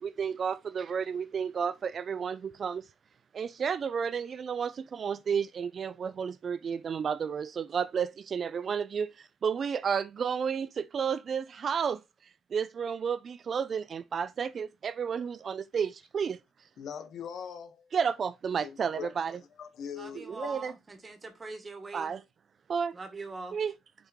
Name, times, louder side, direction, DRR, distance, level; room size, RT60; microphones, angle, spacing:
voice 1, 0.0-2.9 3.3-12.0 12.5-16.4 17.9-19.4 20.3-20.7 21.9-22.2 22.7-22.9 23.5-23.7, right 6 dB, 50° right, 0.3 m, -32 dB
voice 2, 16.8-17.9 18.6-19.1 19.6-20.5, left 7 dB, 70° left, 1.0 m, -41 dB
voice 3, 20.0-20.7 21.0-22.1 23.0-23.5, right 3 dB, 30° right, 2.0 m, -42 dB
6.6 x 3.6 x 4.6 m
cardioid pair, 90°, 0 cm